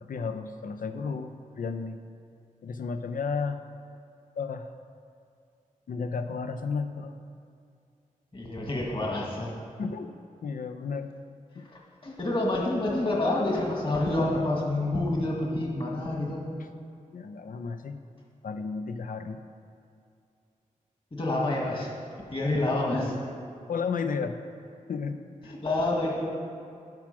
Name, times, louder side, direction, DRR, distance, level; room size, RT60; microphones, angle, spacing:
voice 1, 0.0-2.0 2.6-3.6 4.4-4.7 5.9-7.2 9.8-10.1 10.4-11.1 11.6-11.7 16.6-16.7 17.1-18.0 18.4-19.4 23.7-24.4 24.9-25.5, left 5 dB, 75° left, 8 dB, 0.6 m, -33 dB
voice 2, 8.3-9.5 11.7-16.4 21.1-21.9 22.3-23.2 25.5-26.3, left 2 dB, 35° left, -2 dB, 1.9 m, -28 dB
10.5 x 6.0 x 6.0 m, 2.4 s
wide cardioid pair, 90°, 14 cm